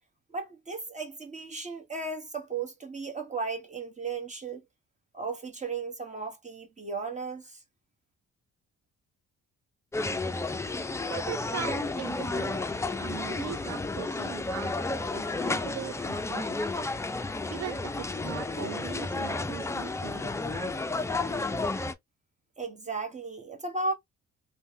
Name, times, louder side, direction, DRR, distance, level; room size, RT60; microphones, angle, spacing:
voice 1, 0.3-4.6 5.1-7.6 22.6-23.9, right 3 dB, 25° right, 1.2 m, -35 dB
sound 1, 9.9-21.9, left 3 dB, 10° left, 0.3 m, -32 dB
voice 2, 11.1-12.6 13.0-14.7 15.1-16.6 17.4-20.8, right 12 dB, 55° right, 0.5 m, -40 dB
3.4 x 2.3 x 2.6 m
cardioid pair, 90°, 30 cm